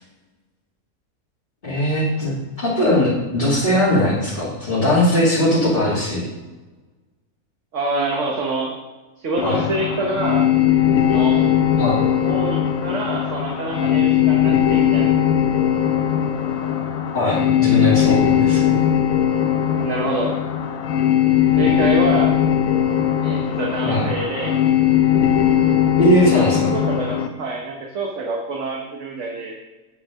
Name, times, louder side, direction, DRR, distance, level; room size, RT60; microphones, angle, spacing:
voice 1, 1.6-6.3 9.4-9.6 11.8-12.0 17.1-18.8 23.8-24.1 26.0-26.8, left 1 dB, 40° left, -11 dB, 2.7 m, -19 dB
voice 2, 7.7-8.7 9.2-10.5 11.0-11.4 12.2-15.3 19.7-20.3 21.6-22.3 23.2-24.6 26.1-26.4 26.7-29.5, right 2 dB, 60° right, -1 dB, 1.4 m, -26 dB
sound 1, 9.4-27.3, left 10 dB, 70° left, 1.2 m, -19 dB
9.3 x 5.9 x 6.3 m, 1.2 s
omnidirectional pair, 1.5 m